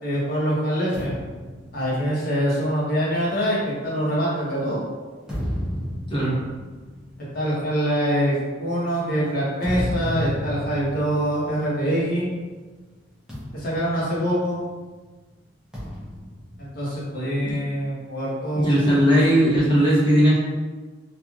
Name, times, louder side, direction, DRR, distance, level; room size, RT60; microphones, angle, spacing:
voice 1, 0.0-1.2 1.7-4.8 7.3-12.3 13.5-14.6 16.6-18.7, equal, 50° left, -7 dB, 0.9 m, -24 dB
sound 1, 0.9-4.5 5.0-12.5 12.7-12.9 13.3-14.9 15.7-17.5, equal, 5° right, 0.7 m, -34 dB
voice 2, 18.6-20.3, equal, 25° left, -7 dB, 0.9 m, -18 dB
3.0 x 2.5 x 2.3 m, 1.4 s
head